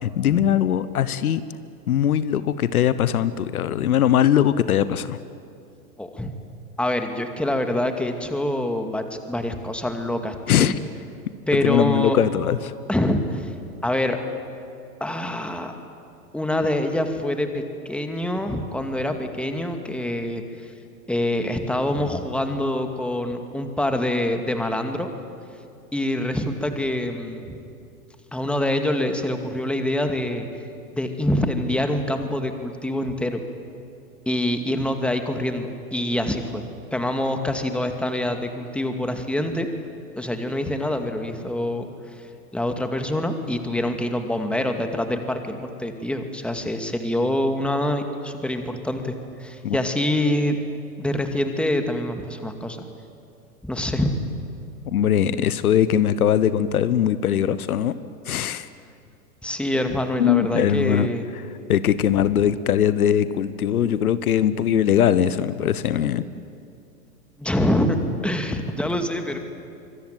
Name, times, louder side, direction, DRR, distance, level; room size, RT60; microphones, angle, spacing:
voice 1, 0.0-1.4 1.9-5.2 10.5-10.8 11.5-12.7 49.6-49.8 54.9-58.0 58.2-58.7 60.2-61.1 61.7-66.2, left 10 dB, 70° left, 15 dB, 1.2 m, -21 dB
voice 2, 6.0-6.3 6.8-10.7 11.5-12.2 12.9-13.5 13.8-14.2 15.0-15.7 16.3-20.7 21.1-25.1 25.9-27.6 28.3-30.6 30.9-33.4 34.3-36.7 36.9-39.7 40.1-49.1 49.4-50.6 51.0-52.8 53.6-54.3 59.4-61.3 67.4-69.4, left 1 dB, ahead, 5 dB, 2.3 m, -25 dB
25.0 x 24.0 x 9.3 m, 2.5 s
hypercardioid pair, 105°, 46 cm